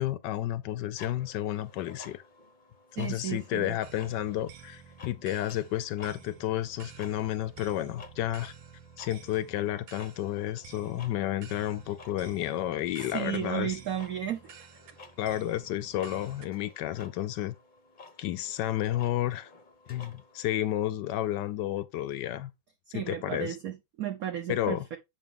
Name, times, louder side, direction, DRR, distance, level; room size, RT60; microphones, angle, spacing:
voice 1, 0.0-2.2 2.9-8.5 9.0-13.8 15.2-17.5 18.2-19.5 19.9-22.5 22.9-23.6 24.5-24.8, left 13 dB, 70° left, 1.1 m, -31 dB
sound 1, 1.0-20.5, left 3 dB, 40° left, 0.7 m, -54 dB
voice 2, 3.0-3.8 13.1-14.7 22.9-25.0, right 10 dB, 65° right, 0.8 m, -34 dB
sound 2, 3.8-16.5, right 8 dB, 85° right, 1.8 m, -51 dB
7.2 x 5.3 x 3.6 m
omnidirectional pair, 2.2 m